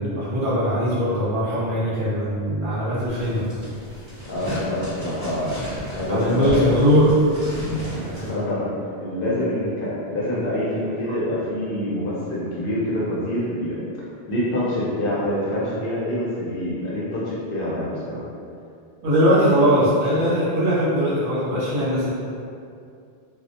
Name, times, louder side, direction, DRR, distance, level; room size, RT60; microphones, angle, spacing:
voice 1, 0.0-3.5 6.1-7.1 7.5-7.9 11.1-11.2 19.0-22.1, equal, 60° right, -10 dB, 0.9 m, -20 dB
sound 1, 3.1-8.3, equal, 30° right, 0.9 m, -33 dB
voice 2, 4.3-6.8 8.0-8.7 9.0-13.8 14.3-18.2, left 1 dB, 65° left, -7 dB, 0.8 m, -26 dB
2.2 x 2.1 x 2.7 m, 2.4 s
omnidirectional pair, 1.1 m